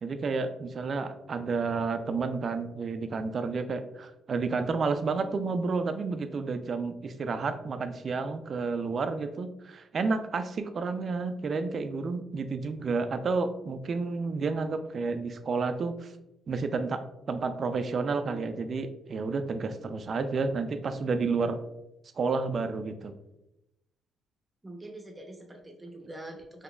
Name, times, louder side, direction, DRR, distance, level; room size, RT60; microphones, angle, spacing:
voice 1, 0.0-16.1 16.5-21.6 22.2-23.1, right 4 dB, 50° right, 9 dB, 0.3 m, -31 dB
voice 2, 24.6-26.6, right 1 dB, 20° right, 3 dB, 0.7 m, -44 dB
3.9 x 2.8 x 2.2 m, 0.89 s
cardioid pair, 90°, 0 cm